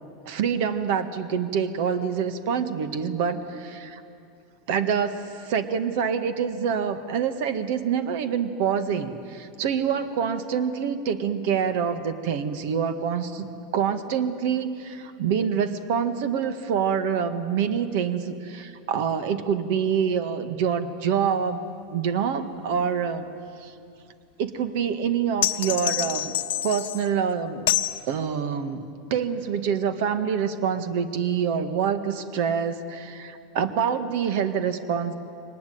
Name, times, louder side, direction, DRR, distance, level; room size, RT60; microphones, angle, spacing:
voice 1, 0.3-4.0 4.7-13.5 13.7-23.2 23.6-23.7 24.4-26.3 26.6-27.6 28.1-35.1, right 7 dB, 65° right, 10 dB, 1.7 m, -26 dB
sound 1, 25.4-27.1 27.7-28.0, left 14 dB, 80° left, 0.9 m, -26 dB
22.5 x 19.5 x 9.5 m, 2.6 s
hypercardioid pair, 110°, 0 cm